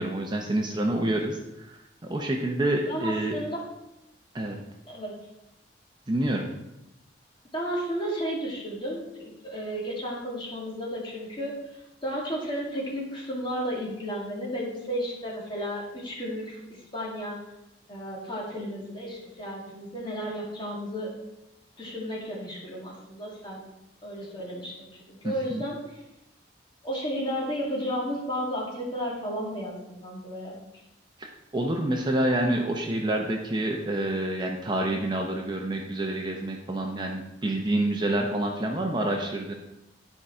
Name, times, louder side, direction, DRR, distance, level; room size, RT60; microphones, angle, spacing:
voice 1, 0.0-1.7 2.0-3.3 4.3-4.6 6.1-6.4 25.2-25.6 31.5-39.5, right 1 dB, 25° right, 1 dB, 0.7 m, -27 dB
voice 2, 2.8-3.6 4.9-5.2 7.5-17.4 17.9-21.1 21.8-23.6 24.0-26.0 26.8-30.6, equal, 30° left, -4 dB, 2.3 m, -33 dB
10.5 x 4.9 x 4.4 m, 0.91 s
head